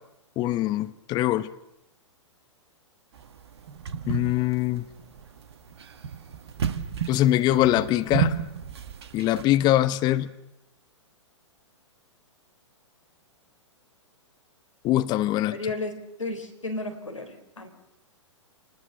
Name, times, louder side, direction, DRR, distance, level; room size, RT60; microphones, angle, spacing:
voice 1, 0.4-1.5 4.1-4.8 7.1-8.4 9.1-10.3 14.8-15.6, left 14 dB, 25° left, 1.0 m, -23 dB
sound 1, 3.2-9.4, right 8 dB, 55° right, 1.8 m, -32 dB
voice 2, 15.5-15.9 16.2-17.7, left 2 dB, 80° left, 4.2 m, -33 dB
27.0 x 20.0 x 6.8 m
figure-of-eight pair, 110°, 16 cm